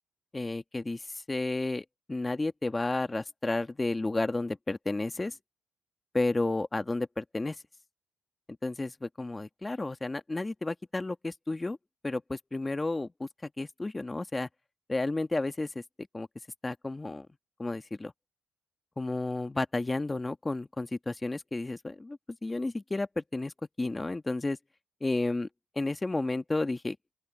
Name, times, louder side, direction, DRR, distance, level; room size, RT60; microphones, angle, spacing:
voice 1, 0.3-5.4 6.1-7.6 8.6-11.8 12.0-14.5 14.9-15.8 16.1-16.3 16.6-17.3 17.6-18.1 19.0-24.6 25.0-25.5 25.7-27.0, left 2 dB, 20° left, 1.6 m, -32 dB
open air
cardioid pair, 90°, 0 cm